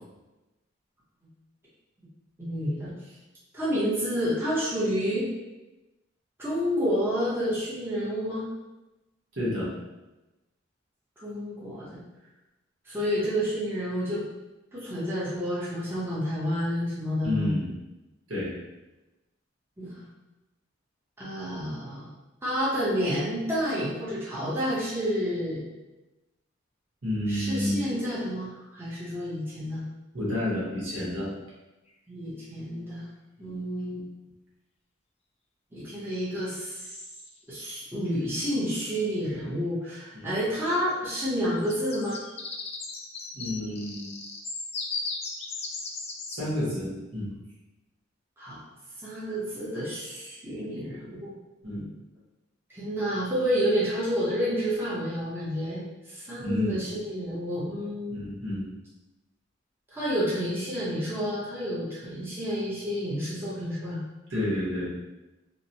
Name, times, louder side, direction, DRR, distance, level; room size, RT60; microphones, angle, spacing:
voice 1, 2.4-2.9 3.5-5.3 6.4-8.5 11.2-12.0 12.9-14.2 14.7-17.5 19.8-20.1 21.2-22.1 22.4-25.6 27.3-29.8 32.1-33.0 33.4-34.0 35.7-36.8 37.5-42.2 48.4-48.6 49.0-51.3 52.7-55.8 56.1-58.2 59.9-64.0, equal, 10° right, -9 dB, 0.7 m, -29 dB
voice 2, 9.3-9.7 17.2-17.7 18.3-18.5 27.0-27.8 30.1-31.3 33.4-33.6 40.1-40.3 43.3-44.1 46.3-47.3 51.6-51.8 56.4-56.7 58.1-58.7 64.3-64.9, left 1 dB, 75° right, -7 dB, 1.1 m, -30 dB
sound 1, 31.9-32.0 36.3-36.9 38.5-38.6 38.9-39.2 41.5-46.4, left 3 dB, 30° left, 0.3 m, -37 dB
2.9 x 2.1 x 2.7 m, 1.0 s
head